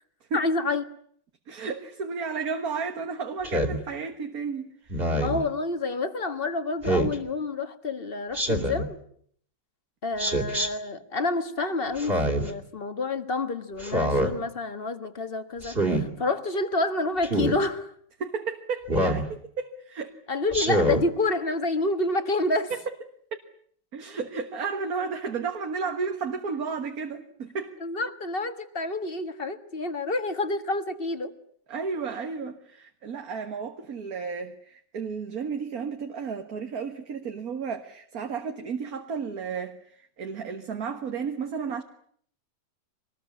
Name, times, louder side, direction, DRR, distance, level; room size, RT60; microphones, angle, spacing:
voice 1, 0.3-0.8 5.2-9.0 10.0-17.9 20.3-22.7 27.8-31.3, left 3 dB, 35° left, 1.7 m, -28 dB
voice 2, 1.5-5.1 18.2-20.2 22.7-22.8 23.9-27.8 31.7-41.8, right 5 dB, 60° right, 1.9 m, -33 dB
Speech synthesizer, 3.4-3.8 4.9-5.4 6.8-7.2 8.3-8.9 10.2-10.7 12.0-12.5 13.8-14.3 15.6-16.0 17.2-17.6 18.9-19.3 20.5-21.0, right 1 dB, 35° right, 3.0 m, -25 dB
24.5 x 20.5 x 9.6 m
omnidirectional pair, 1.8 m